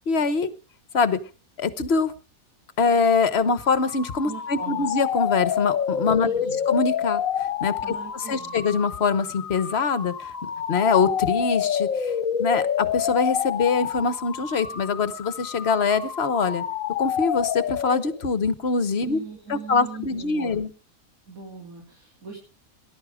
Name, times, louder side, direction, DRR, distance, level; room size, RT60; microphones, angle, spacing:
voice 1, 0.1-0.5 0.9-1.2 1.6-2.1 2.8-7.2 7.6-7.8 8.3-10.1 10.4-12.1 12.4-16.6 17.0-19.2 19.5-20.7, left 5 dB, 50° left, 13 dB, 1.2 m, -23 dB
sound 1, 3.5-18.2, left 8 dB, 70° left, 1.3 m, -28 dB
voice 2, 4.2-4.9 6.2-6.6 7.8-8.6 19.0-20.6 21.3-22.4, right 5 dB, 75° right, -1 dB, 3.8 m, -40 dB
19.0 x 11.5 x 4.9 m, 0.38 s
omnidirectional pair, 1.5 m